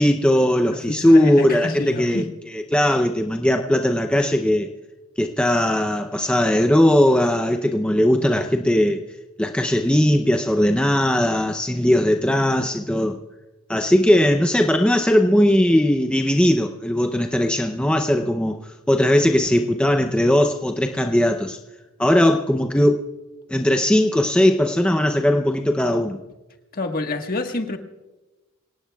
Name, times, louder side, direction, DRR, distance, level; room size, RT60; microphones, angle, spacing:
voice 1, 0.0-2.3 2.5-4.7 5.2-9.0 9.4-13.2 13.7-21.6 22.0-23.1 23.5-26.2, left 1 dB, 5° left, 0.6 m, -19 dB
voice 2, 0.7-2.3 26.7-27.8, left 2 dB, 45° left, 1.4 m, -27 dB
26.5 x 17.5 x 2.3 m
head